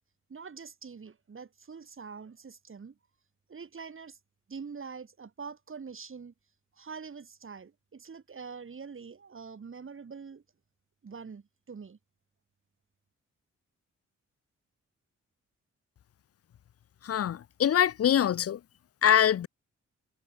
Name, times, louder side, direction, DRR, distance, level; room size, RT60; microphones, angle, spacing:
voice 1, 0.3-3.0 3.5-4.2 4.5-6.3 6.7-10.4 11.0-12.0, right 5 dB, 45° right, 3.1 m, -44 dB
voice 2, 17.0-18.6 19.0-19.5, left 10 dB, 50° left, 0.6 m, -24 dB
cardioid pair, 75°, 29 cm